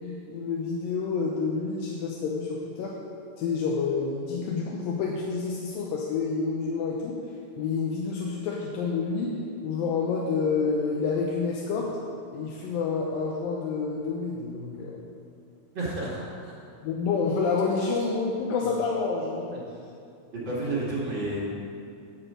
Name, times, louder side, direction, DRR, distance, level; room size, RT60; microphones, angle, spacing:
voice 1, 0.0-2.9 3.4-7.2 7.6-9.3 9.6-11.9 12.3-15.0 16.8-19.4, left 4 dB, 85° left, -2 dB, 2.5 m, -28 dB
voice 2, 15.7-16.5 17.8-17.9 18.6-18.7 19.5-19.6 20.3-21.4, right 2 dB, 40° right, -7 dB, 1.9 m, -31 dB
9.6 x 4.9 x 7.3 m, 2.6 s
omnidirectional pair, 4.0 m